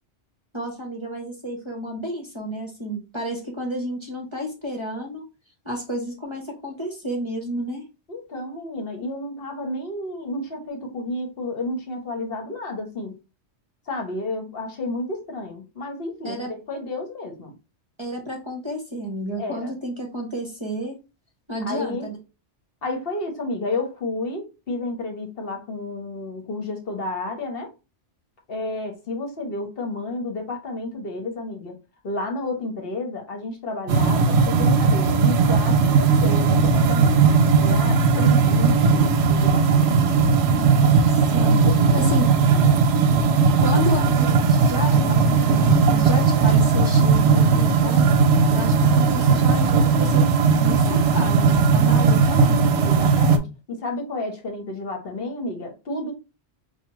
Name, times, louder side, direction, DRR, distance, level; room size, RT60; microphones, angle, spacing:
voice 1, 0.5-5.2 5.6-7.8 16.2-16.5 18.0-21.0 21.5-22.2 40.5-41.6 41.9-42.3 43.6-48.1 48.5-50.3 50.6-52.6, equal, 30° right, 0.7 m, -31 dB
voice 2, 8.1-13.1 13.9-17.5 19.4-19.7 21.6-22.1 22.8-27.7 28.5-31.8 32.0-37.2 37.6-40.0 41.6-42.1 42.5-42.6 52.8-56.1, left 2 dB, 60° left, 1.0 m, -31 dB
sound 1, 33.9-53.4, right 5 dB, 70° right, 0.8 m, -17 dB
4.8 x 2.3 x 3.0 m
omnidirectional pair, 1.2 m